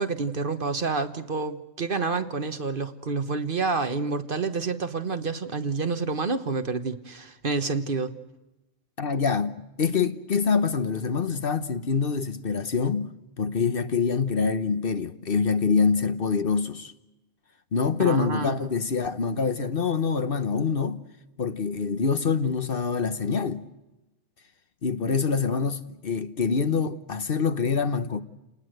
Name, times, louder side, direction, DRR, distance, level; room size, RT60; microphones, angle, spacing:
voice 1, 0.0-8.1 18.0-18.6, right 4 dB, 50° right, 1.4 m, -28 dB
voice 2, 9.0-13.1 13.4-16.9 17.7-21.0 21.4-23.6 24.8-28.2, left 5 dB, 55° left, 1.2 m, -25 dB
29.0 x 19.5 x 7.9 m
omnidirectional pair, 1.2 m